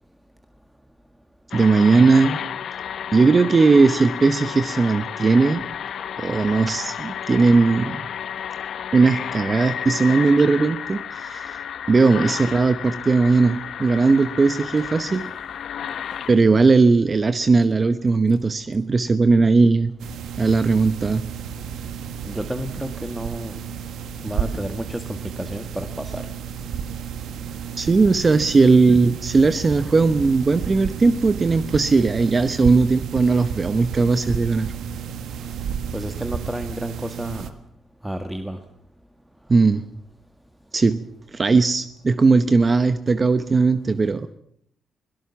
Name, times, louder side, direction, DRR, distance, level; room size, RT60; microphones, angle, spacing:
sound 1, 1.5-16.4, left 9 dB, 65° left, 1.0 m, -32 dB
voice 1, 1.5-2.4 3.1-5.6 6.2-8.0 8.9-15.3 16.3-19.9 20.4-21.2 27.8-34.7 39.5-39.8 40.7-41.1 41.3-44.3, right 4 dB, 35° right, 12 dB, 1.0 m, -18 dB
sound 2, 20.0-37.5, right 7 dB, 75° right, 1.6 m, -32 dB
voice 2, 22.2-23.5 24.2-26.2 35.9-37.5 38.0-38.6, right 1 dB, 5° right, 7 dB, 1.7 m, -31 dB
22.0 x 17.5 x 7.1 m, 0.69 s
cardioid pair, 80°, 0 cm